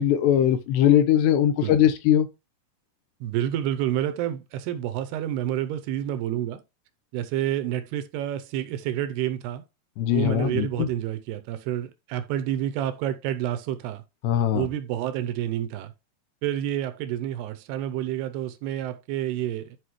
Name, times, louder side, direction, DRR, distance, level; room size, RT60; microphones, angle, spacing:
voice 1, 0.0-2.3 10.0-10.9 14.2-14.7, left 10 dB, 85° left, 3.1 m, -20 dB
voice 2, 3.2-6.6 7.1-9.6 10.1-14.0 14.5-15.9 16.4-19.8, right 11 dB, 85° right, 2.5 m, -29 dB
11.5 x 4.8 x 3.1 m
omnidirectional pair, 5.0 m